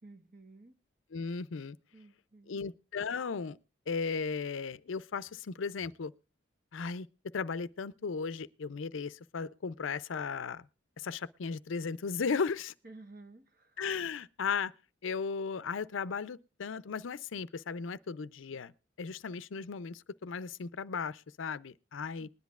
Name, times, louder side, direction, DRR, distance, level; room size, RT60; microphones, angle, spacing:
voice 1, 0.0-0.8 1.9-2.6 12.8-13.8 22.2-22.3, right 2 dB, 45° right, 1.2 m, -53 dB
voice 2, 1.1-1.7 2.5-3.6 3.9-6.1 6.7-7.1 7.3-10.6 11.0-12.7 13.8-14.7 15.0-18.7 19.0-22.3, left 5 dB, 80° left, 0.5 m, -36 dB
21.0 x 10.5 x 2.4 m
head